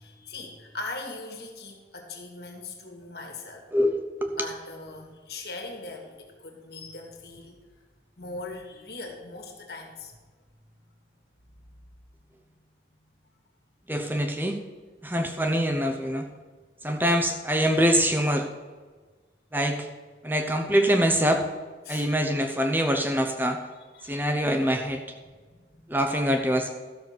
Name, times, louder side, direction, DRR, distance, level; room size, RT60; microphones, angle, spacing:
voice 1, 0.0-3.6 4.4-7.6 8.2-10.1 20.8-21.1 21.8-22.1 23.9-24.5 25.5-25.9, left 3 dB, 60° left, 2 dB, 2.2 m, -40 dB
voice 2, 3.7-4.5 13.9-14.6 15.0-16.3 16.8-18.5 19.5-19.9 20.2-21.5 21.9-23.6 24.0-25.0 25.9-26.7, equal, 10° right, 5 dB, 0.7 m, -24 dB
13.0 x 6.9 x 6.1 m, 1.4 s
head